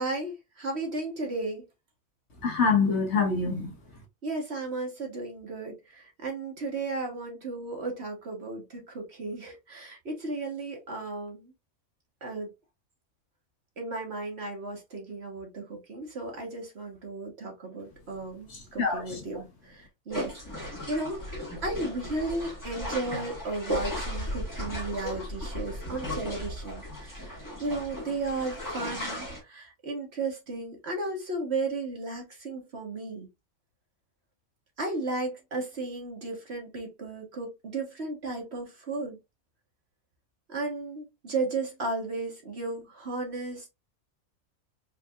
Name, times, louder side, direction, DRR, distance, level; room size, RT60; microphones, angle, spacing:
voice 1, 0.0-1.6 4.2-11.5 12.2-12.5 13.8-21.2 21.6-33.3 34.8-39.2 40.5-43.7, right 2 dB, 50° right, 1.5 m, -34 dB
voice 2, 2.4-3.7 18.5-19.2, left 4 dB, 55° left, 1.4 m, -26 dB
sound 1, 20.1-29.4, equal, 15° left, 1.7 m, -36 dB
4.6 x 3.3 x 2.4 m
omnidirectional pair, 1.5 m